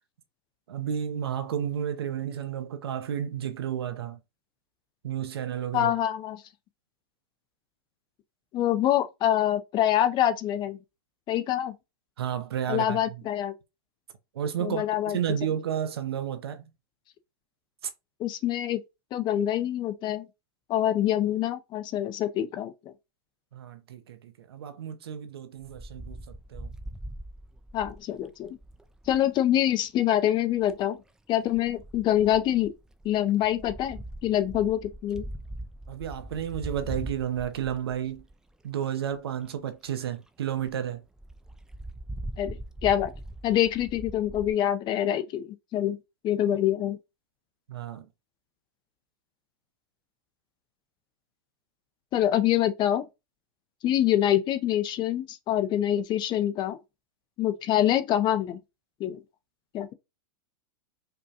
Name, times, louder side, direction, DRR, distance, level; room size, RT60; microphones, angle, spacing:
voice 1, 0.7-4.2 5.0-5.9 12.2-13.0 14.3-16.7 23.5-26.2 26.5-26.7 35.9-38.2 38.6-41.0 47.7-48.1, right 9 dB, 80° right, 0.7 m, -32 dB
voice 2, 5.7-6.4 8.5-10.8 11.3-11.7 12.7-13.5 14.6-15.2 18.2-18.8 19.1-20.3 20.7-22.7 27.7-28.6 29.1-31.0 31.3-32.7 33.0-35.3 42.4-43.1 43.4-46.0 46.2-47.0 52.1-53.0 53.8-56.8 57.4-58.6 59.0-59.2 59.7-59.9, left 11 dB, 35° left, 0.6 m, -25 dB
Wind, 25.6-29.3 30.4-30.8 31.5-38.5 39.1-39.2 39.5-39.6 39.9-40.0 40.3-40.4 40.6-40.7 41.2-44.5, right 1 dB, 5° right, 0.4 m, -41 dB
5.2 x 2.3 x 2.8 m
hypercardioid pair, 110°, 13 cm